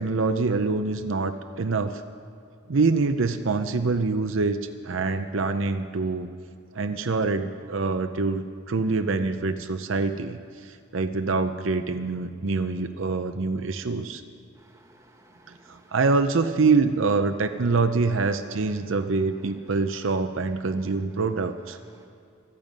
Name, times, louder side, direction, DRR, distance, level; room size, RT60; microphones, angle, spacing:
voice 1, 0.0-2.0 2.7-6.3 6.7-14.2 15.7-21.8, right 4 dB, 70° right, 8 dB, 0.7 m, -25 dB
voice 2, 14.5-16.0 19.5-19.8 20.9-21.0 21.8-22.1, right 1 dB, 15° right, 2 dB, 1.5 m, -57 dB
25.0 x 9.1 x 5.3 m, 2.4 s
head